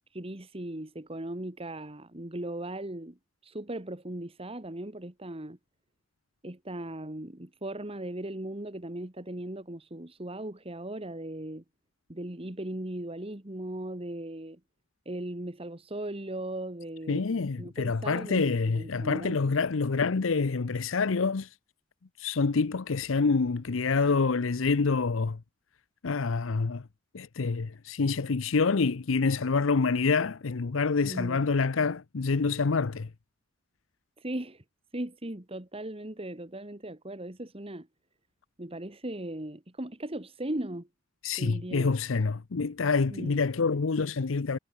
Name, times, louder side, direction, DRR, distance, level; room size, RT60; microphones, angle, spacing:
voice 1, 0.1-3.2 3.4-5.6 6.4-11.6 12.1-14.6 15.1-19.4 31.0-31.4 34.2-34.6 34.9-37.9 38.6-40.9 41.4-41.9 43.1-43.4, right 1 dB, 30° right, 1.8 m, -38 dB
voice 2, 17.1-21.5 22.2-25.4 26.0-26.9 27.1-33.1 41.2-44.6, left 4 dB, 85° left, 0.7 m, -27 dB
head